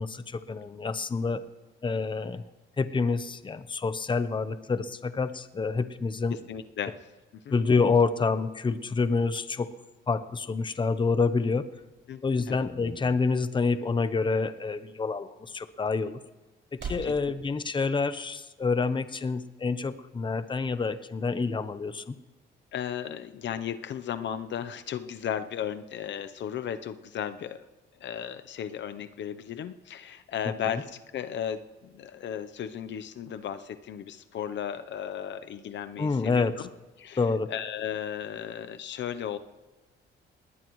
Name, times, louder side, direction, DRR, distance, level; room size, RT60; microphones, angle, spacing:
voice 1, 0.0-1.4 1.8-2.4 2.8-6.4 7.5-9.7 10.1-11.7 12.2-16.2 16.7-22.1 30.7-30.8 36.0-36.6 37.2-37.5, left 4 dB, 25° left, 12 dB, 0.8 m, -27 dB
voice 2, 6.5-7.0 7.4-7.5 12.1-12.7 17.0-17.1 22.7-27.7 28.0-36.5 37.0-37.2 37.5-39.4, left 9 dB, 65° left, 10 dB, 0.8 m, -35 dB
sound 1, 10.9-17.2, right 3 dB, 65° right, 5.6 m, -47 dB
19.5 x 19.0 x 3.2 m, 1.2 s
cardioid pair, 90°, 20 cm